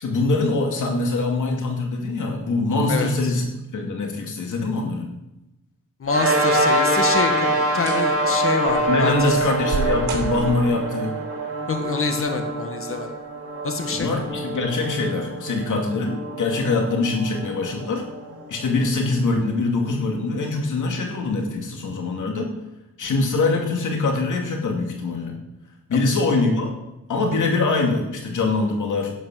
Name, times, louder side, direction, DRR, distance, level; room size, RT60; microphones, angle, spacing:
voice 1, 0.0-5.1 8.9-11.1 13.9-18.0 18.5-22.5 23.0-25.3 25.9-26.7 27.1-29.1, left 3 dB, 85° left, 2 dB, 2.6 m, -23 dB
voice 2, 2.9-3.3 6.0-9.3 11.7-13.1 13.6-14.1 25.9-26.1, left 4 dB, 45° left, 5 dB, 1.6 m, -26 dB
sound 1, 6.0-6.5 7.0-7.4 7.8-8.1 8.7-10.8 12.1-12.6 13.1-13.2 13.9-14.1 14.5-14.6, right 4 dB, 70° right, 2.7 m, -32 dB
sound 2, 6.1-18.8, right 1 dB, 50° right, 2.6 m, -25 dB
11.5 x 8.5 x 6.3 m, 0.92 s
wide cardioid pair, 100°, 30 cm